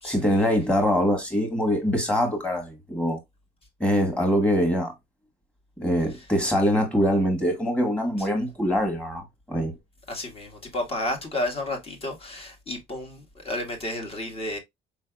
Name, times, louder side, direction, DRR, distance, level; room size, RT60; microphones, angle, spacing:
voice 1, 0.0-3.2 3.8-4.9 5.8-9.7, equal, 5° left, 1.7 m, -23 dB
voice 2, 10.1-14.6, left 1 dB, 35° left, 1.6 m, -32 dB
4.7 x 3.3 x 2.3 m
cardioid pair, 110°, 17 cm